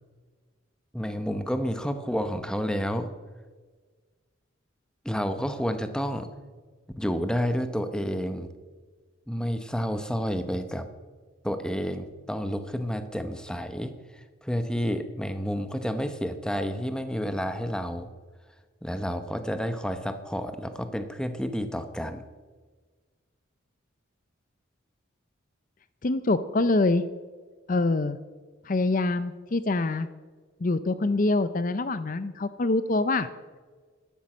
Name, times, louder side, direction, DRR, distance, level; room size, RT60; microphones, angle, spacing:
voice 1, 0.9-3.1 5.0-6.3 7.0-8.5 9.3-10.9 11.4-18.1 18.8-22.2, equal, 5° left, 9 dB, 0.9 m, -30 dB
voice 2, 26.0-27.1 27.7-28.2 28.7-30.1 30.6-33.3, left 2 dB, 40° left, 13 dB, 0.5 m, -25 dB
12.5 x 12.0 x 7.3 m, 1.4 s
head